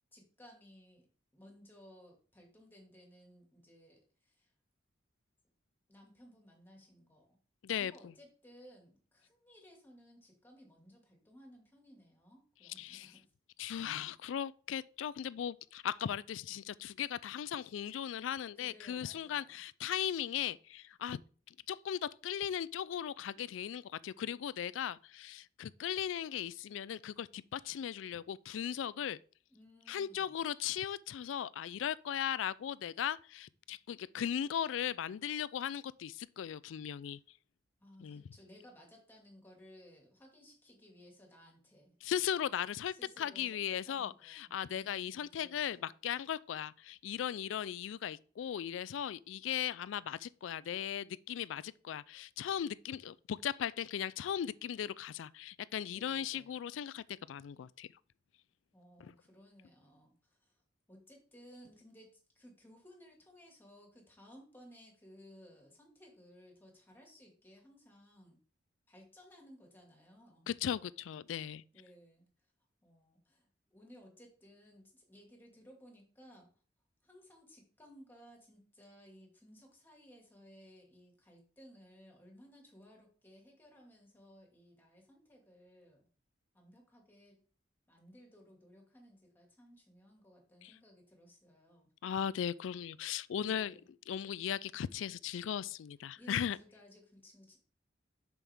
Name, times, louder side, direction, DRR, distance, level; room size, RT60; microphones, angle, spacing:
voice 1, 0.1-4.5 5.9-7.4 7.7-13.3 18.6-19.6 29.5-30.4 37.8-42.0 42.9-45.9 55.9-56.6 58.7-60.6 60.9-68.4 68.9-70.5 71.7-72.3 72.8-76.5 77.0-86.1 86.5-87.4 87.9-91.9 93.4-93.9 96.2-97.6, equal, 10° left, 2.1 m, -59 dB
voice 2, 12.8-13.1 13.6-21.2 21.7-29.2 29.9-37.2 38.0-38.2 42.0-57.9 59.0-59.1 70.5-71.6 90.6-90.7 92.0-93.7 94.1-96.6, left 9 dB, 90° left, 0.3 m, -38 dB
7.2 x 6.0 x 3.5 m
head